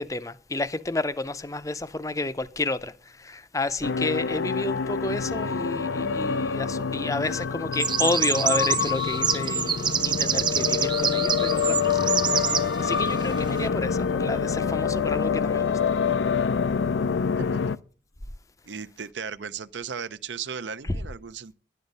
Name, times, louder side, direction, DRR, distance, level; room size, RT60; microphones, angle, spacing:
voice 1, 0.0-15.8 20.9-21.0, left 2 dB, 15° left, 0.5 m, -31 dB
sound 1, 3.8-17.8, left 6 dB, 85° left, 0.5 m, -26 dB
sound 2, 5.1-11.9, left 1 dB, 70° left, 1.4 m, -50 dB
sound 3, 7.7-12.6, right 7 dB, 25° right, 0.6 m, -26 dB
voice 2, 18.6-21.5, right 6 dB, 75° right, 0.7 m, -36 dB
11.5 x 9.4 x 5.4 m
head